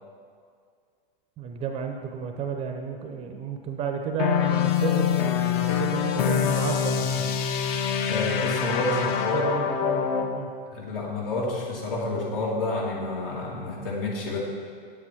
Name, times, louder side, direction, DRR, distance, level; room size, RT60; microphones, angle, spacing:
voice 1, 1.4-7.3 8.8-9.1 9.3-10.5, right 6 dB, 20° right, 5 dB, 0.6 m, -32 dB
sound 1, 4.2-10.4, left 8 dB, 35° left, 0.6 m, -25 dB
voice 2, 8.1-9.6 10.7-14.4, left 2 dB, 65° left, -3 dB, 2.6 m, -29 dB
8.6 x 8.2 x 4.5 m, 2.1 s
hypercardioid pair, 125°, 30 cm